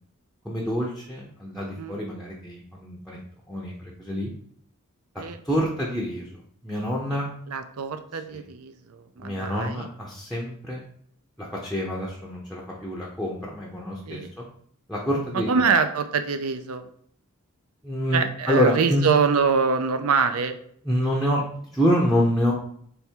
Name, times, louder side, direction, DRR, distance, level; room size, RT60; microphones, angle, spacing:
voice 1, 0.4-3.2 3.5-4.3 5.4-6.3 6.6-7.3 8.3-8.4 9.2-10.8 11.4-14.4 14.9-15.6 17.8-19.1 20.9-22.5, equal, ahead, -3 dB, 0.6 m, -27 dB
voice 2, 7.5-9.9 14.1-14.3 15.3-16.8 18.1-20.6, right 5 dB, 80° right, 9 dB, 0.5 m, -24 dB
3.5 x 3.4 x 4.4 m, 0.64 s
head